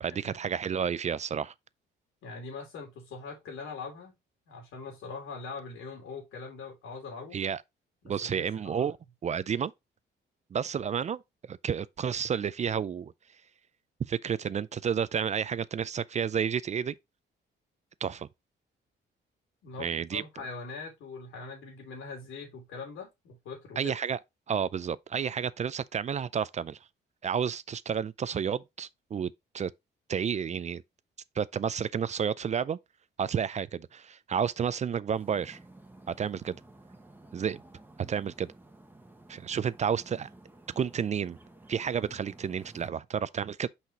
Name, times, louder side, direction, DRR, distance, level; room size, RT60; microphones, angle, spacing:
voice 1, 0.0-1.5 7.3-7.6 8.0-9.0 9.2-9.7 10.5-11.2 11.5-13.1 14.1-16.9 18.0-18.3 19.8-20.2 23.8-24.2 24.5-26.8 27.2-29.7 30.1-30.8 31.4-32.8 33.2-35.6 36.2-36.6 37.3-37.6 38.1-38.5 39.3-40.3 40.8-41.4 41.7-43.7, right 7 dB, 35° right, 0.4 m, -31 dB
voice 2, 2.2-4.1 4.5-7.4 8.0-8.9 19.6-23.9, left 4 dB, 85° left, 3.0 m, -42 dB
sound 1, 35.1-42.9, right 2 dB, 10° right, 1.2 m, -53 dB
5.7 x 5.7 x 2.9 m
cardioid pair, 90°, 20 cm